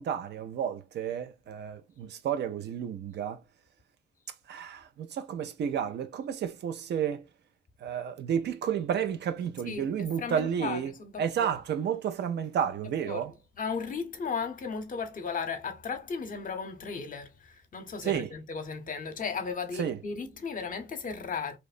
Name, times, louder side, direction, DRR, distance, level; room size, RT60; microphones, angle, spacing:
voice 1, 0.0-3.4 4.5-7.2 7.8-10.9 11.2-13.3 18.0-18.3 19.8-20.0, right 8 dB, 60° right, 0.4 m, -31 dB
voice 2, 9.7-11.5 13.1-13.2 13.6-21.6, left 5 dB, 45° left, 0.8 m, -35 dB
2.9 x 2.0 x 2.4 m
cardioid pair, 90°, 20 cm